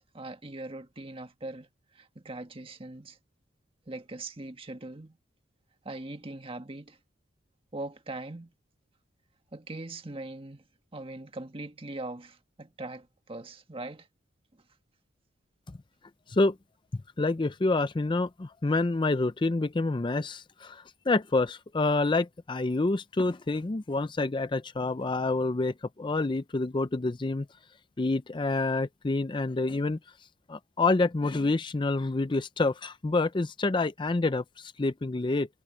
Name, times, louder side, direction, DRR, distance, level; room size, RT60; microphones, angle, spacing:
voice 1, 0.0-1.7 1.9-3.2 3.9-5.2 5.8-7.0 7.7-8.5 9.5-10.7 10.9-14.1, right 2 dB, 30° right, 1.5 m, -41 dB
voice 2, 17.2-27.5 28.0-30.0 30.5-35.5, left 3 dB, 25° left, 0.5 m, -27 dB
head